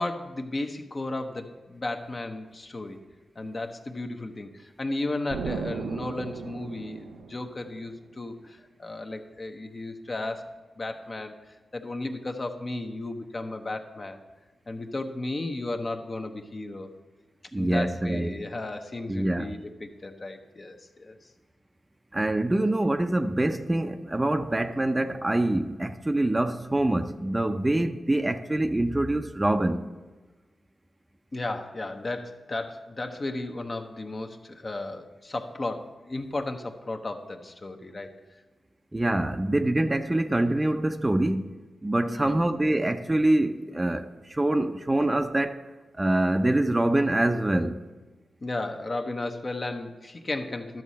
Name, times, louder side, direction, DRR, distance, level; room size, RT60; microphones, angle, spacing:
voice 1, 0.0-3.0 3.4-10.5 10.8-14.2 14.7-16.9 17.6-21.3 31.3-38.1 42.1-42.4 48.4-50.8, left 2 dB, 45° left, 0.9 m, -34 dB
Explosion, 5.3-8.0, right 6 dB, 85° right, 0.4 m, -36 dB
voice 2, 17.5-18.4 19.1-19.6 22.1-29.8 38.9-41.5 41.8-45.6 45.9-47.8, right 1 dB, 20° right, 0.5 m, -25 dB
12.0 x 6.3 x 4.2 m
supercardioid pair, 40°, 0 cm